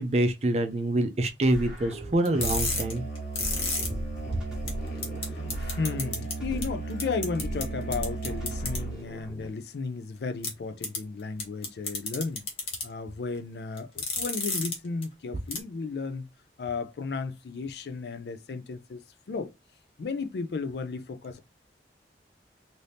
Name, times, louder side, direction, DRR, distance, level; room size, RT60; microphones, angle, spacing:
voice 1, 0.0-3.0, right 1 dB, 35° right, 0.4 m, -26 dB
sound 1, 1.5-2.9 3.4-6.9 7.4-9.5, equal, 5° right, 1.0 m, -38 dB
sound 2, 2.2-3.9 4.3-4.4 4.7-4.8 5.0-5.2 5.5-6.3 6.6-6.7 7.0-7.6 7.9-8.8 10.4-10.5 10.8-11.0 11.4-12.8 13.8-14.7 15.0-15.1 15.5-15.6, left 3 dB, 35° left, 1.0 m, -30 dB
Musical instrument, 2.3-9.1, right 4 dB, 50° left, 1.4 m, -36 dB
voice 2, 5.3-12.5 12.8-16.3 16.6-19.0 19.3-19.5 20.0-21.4, left 4 dB, 65° left, 0.4 m, -34 dB
2.7 x 2.6 x 3.2 m
head